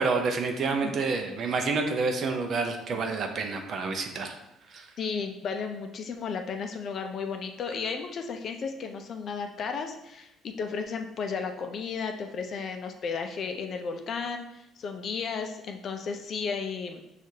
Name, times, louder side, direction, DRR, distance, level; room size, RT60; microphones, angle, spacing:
voice 1, 0.0-4.3 4.7-4.8, right 4 dB, 45° right, 5 dB, 0.5 m, -28 dB
voice 2, 5.0-17.0, left 5 dB, 45° left, 5 dB, 0.4 m, -34 dB
6.1 x 2.4 x 2.7 m, 0.85 s
cardioid pair, 140°, 0 cm